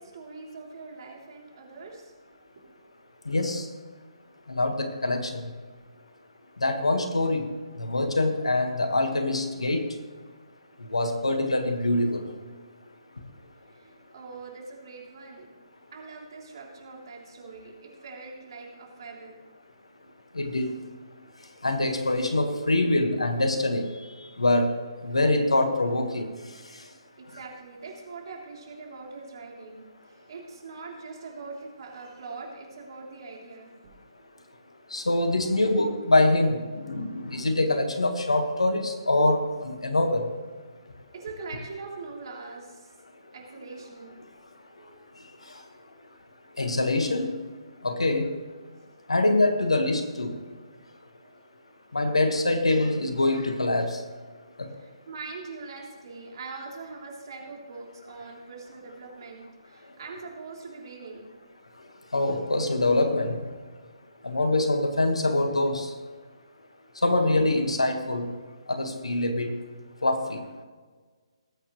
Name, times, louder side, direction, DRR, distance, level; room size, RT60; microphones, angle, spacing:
voice 1, 0.0-2.1 2.5-2.6 4.1-4.2 13.7-15.5 15.9-19.5 27.2-33.9 41.1-42.9 43.3-44.2 44.7-45.0 51.2-51.5 53.2-53.3 54.7-61.3, right 4 dB, 50° right, -1 dB, 3.3 m, -42 dB
voice 2, 3.2-3.7 4.5-5.4 6.6-7.5 7.8-9.9 10.9-12.3 20.3-20.8 21.6-23.9 24.4-24.7 25.0-26.3 34.9-40.3 46.6-47.3 47.8-48.3 49.1-50.4 51.9-54.0 54.6-54.7 62.1-63.4 64.2-65.9 67.0-68.3 68.7-69.5 70.0-70.4, left 2 dB, 80° left, 6 dB, 1.6 m, -24 dB
19.5 x 8.6 x 3.2 m, 1.4 s
figure-of-eight pair, 140°, 3 cm